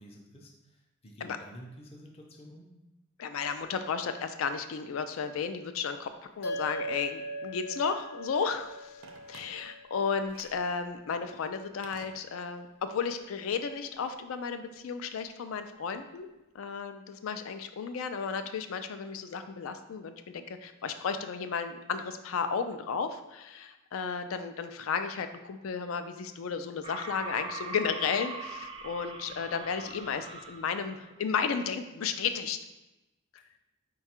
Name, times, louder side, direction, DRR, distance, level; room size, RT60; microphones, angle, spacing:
voice 1, 0.0-2.7, equal, 30° left, 0 dB, 0.5 m, -50 dB
voice 2, 3.2-6.1 6.4-9.0 9.3-16.3 16.5-32.6, left 6 dB, 85° left, 9 dB, 0.4 m, -33 dB
sound 1, 6.4-11.1, right 1 dB, 65° left, 0.8 m, -41 dB
Telephone, 9.0-9.9 10.3-10.7 11.8-12.7 13.0-13.1, right 4 dB, 75° right, 0.5 m, -53 dB
sound 2, 26.8-31.0, right 3 dB, 25° right, 0.3 m, -42 dB
4.7 x 2.3 x 4.3 m, 1.0 s
head